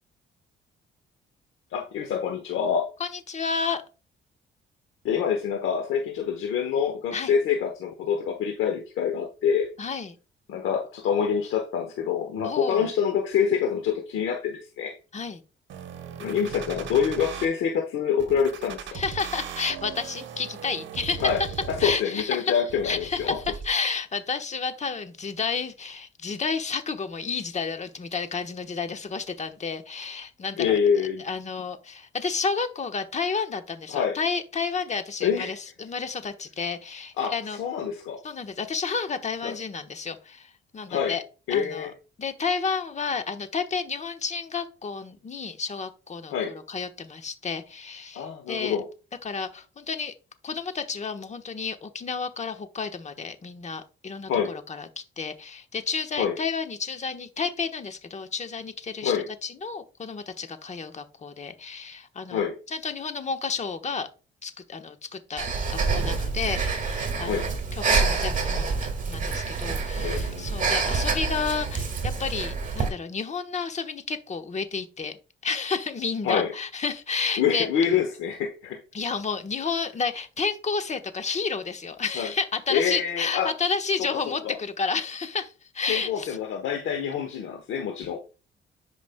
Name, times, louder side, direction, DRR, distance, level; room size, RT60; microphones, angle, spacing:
voice 1, 1.7-2.9 5.0-9.7 10.5-14.9 16.2-19.0 21.2-21.4 21.8-23.4 30.6-31.2 33.9-34.2 35.2-35.6 37.2-38.2 39.4-39.5 40.9-41.1 41.5-41.9 46.3-46.5 48.1-48.8 54.3-54.5 56.2-56.3 59.0-59.2 62.3-62.5 67.2-67.5 70.0-70.6 76.2-76.5 77.4-78.8 82.2-82.3 82.7-83.5 84.4-84.5 85.9-88.2, left 7 dB, 80° left, 3 dB, 1.0 m, -26 dB
voice 2, 3.0-3.8 7.1-7.3 9.8-10.2 12.4-12.9 15.1-15.4 18.9-21.3 21.8-22.6 22.8-30.7 31.2-37.6 38.2-41.2 41.5-41.9 42.2-48.8 49.2-50.1 50.4-62.4 62.7-64.1 64.4-75.2 75.4-77.7 78.9-86.4, left 5 dB, 35° left, 7 dB, 1.1 m, -31 dB
sound 1, 15.7-17.5 18.2-22.2 22.7-23.7, right 7 dB, 70° right, 0.9 m, -38 dB
Breathing, 65.4-72.9, right 4 dB, 40° right, 1.7 m, -27 dB
10.5 x 5.1 x 2.2 m, 0.33 s
cardioid pair, 90°, 20 cm